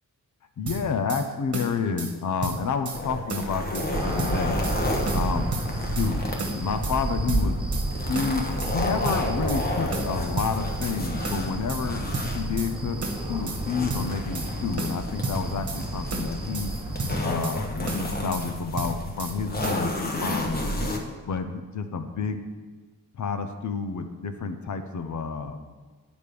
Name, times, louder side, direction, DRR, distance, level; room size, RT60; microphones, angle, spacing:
voice 1, 0.6-4.6 5.1-5.5 6.0-6.3 6.5-7.6 8.1-12.0 12.3-13.0 13.3-16.7 17.2-20.9 21.3-22.4 23.2-25.6, left 5 dB, 60° left, 7 dB, 0.7 m, -29 dB
sound 1, 0.7-1.2 1.5-2.1 2.4-3.0 3.3-3.9 4.2-4.8 5.1-6.1 6.4-7.0 7.3-7.9 8.1-8.8 9.0-9.6 9.9-11.0 11.2-11.8 12.1-12.7 13.0-13.6 13.9-14.5 14.8-15.8 16.1-16.7 17.0-17.6 17.9-18.5 18.8-19.4 19.6-19.8, right 3 dB, 45° right, 1.4 m, -33 dB
sound 2, 2.9-21.0, left 1 dB, 25° left, 1.1 m, -32 dB
sound 3, 3.9-17.2, right 1 dB, 15° right, 1.1 m, -31 dB
9.3 x 5.1 x 6.8 m, 1.4 s
wide cardioid pair, 160°, 34 cm